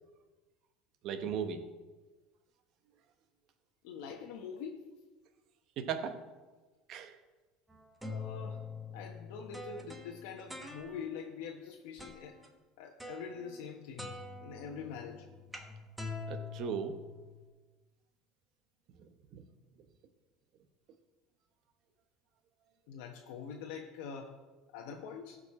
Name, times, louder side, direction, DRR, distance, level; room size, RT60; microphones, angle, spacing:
voice 1, 1.0-1.6 5.8-6.2 6.9-7.1 16.3-17.0 19.3-19.4, right 7 dB, 55° right, 8 dB, 1.0 m, -36 dB
voice 2, 3.8-4.8 8.0-8.6 8.9-12.4 12.8-15.3 22.9-24.3 24.7-25.4, left 6 dB, 80° left, 1 dB, 1.0 m, -44 dB
sound 1, 7.7-11.3 12.0-12.5 13.0-13.7 14.0-17.5, left 3 dB, 10° right, 1.2 m, -45 dB
15.0 x 5.2 x 4.2 m, 1.2 s
supercardioid pair, 125°, 0 cm